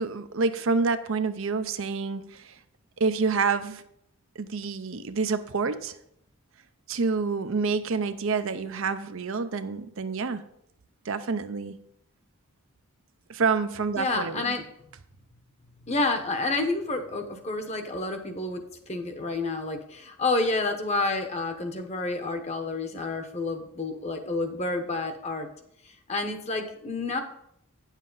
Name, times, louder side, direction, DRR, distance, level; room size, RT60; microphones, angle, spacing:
voice 1, 0.0-2.6 3.0-3.8 4.4-6.0 6.9-10.4 11.0-11.8 13.3-14.5, right 4 dB, 60° right, 10 dB, 0.6 m, -28 dB
voice 2, 14.0-14.6 15.8-25.5 26.1-27.2, left 3 dB, 30° left, 6 dB, 0.9 m, -29 dB
9.5 x 7.3 x 3.9 m, 0.72 s
head